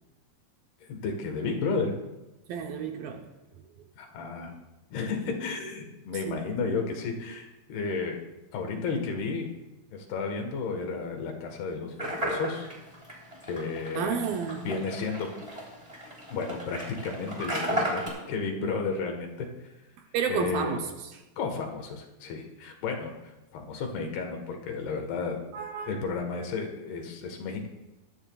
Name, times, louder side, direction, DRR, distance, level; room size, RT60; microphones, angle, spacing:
voice 1, 0.9-1.9 4.0-4.5 4.9-8.2 8.5-9.5 9.9-12.7 13.4-14.2 14.6-15.3 16.3-19.5 20.3-20.8 21.4-23.1 23.5-25.4 25.9-27.7, left 4 dB, 75° left, 3 dB, 3.3 m, -32 dB
voice 2, 2.5-3.2 6.3-6.4 13.9-14.7 20.1-20.9 21.1-21.2 25.5-25.9, right 7 dB, 75° right, 4 dB, 2.3 m, -31 dB
sound 1, 12.0-18.1, equal, 10° right, 2.8 m, -34 dB
19.5 x 13.0 x 2.3 m, 1.0 s
omnidirectional pair, 4.6 m